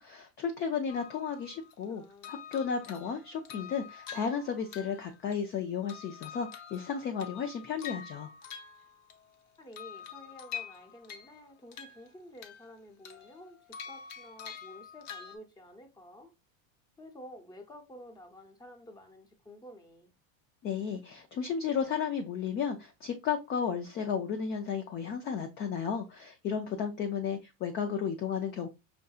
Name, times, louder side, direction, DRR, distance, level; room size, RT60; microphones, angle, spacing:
voice 1, 0.0-8.3 20.6-28.7, left 6 dB, 25° left, 0.3 m, -33 dB
sound 1, 0.9-1.8 2.2-5.6 5.9-9.3 9.7-11.4 11.7-12.7 13.0-15.4, left 8 dB, 65° left, 0.9 m, -46 dB
voice 2, 1.8-2.3 9.6-13.6 13.9-16.3 17.0-20.1, left 1 dB, 10° left, 0.8 m, -51 dB
5.5 x 2.6 x 2.3 m
supercardioid pair, 130°, 42 cm